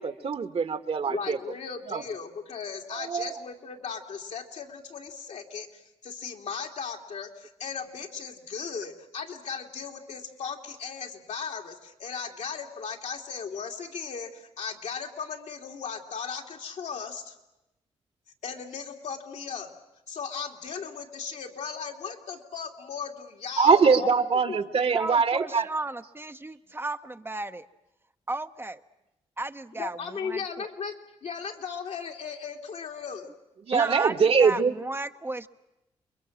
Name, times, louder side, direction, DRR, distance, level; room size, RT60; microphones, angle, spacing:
voice 1, 0.0-1.4 1.9-2.0 2.9-3.3 23.6-25.7 33.6-34.7, right 5 dB, 55° right, 10 dB, 1.7 m, -23 dB
voice 2, 1.1-17.3 18.4-19.7 20.1-24.2 24.5-24.6 29.8-30.9 31.2-33.3, left 6 dB, 70° left, 2 dB, 3.1 m, -37 dB
voice 3, 24.9-27.7 28.3-28.8 29.4-30.7 33.7-35.5, right 2 dB, 20° right, 8 dB, 1.0 m, -34 dB
29.0 x 22.0 x 7.5 m, 0.91 s
supercardioid pair, 60°, 12 cm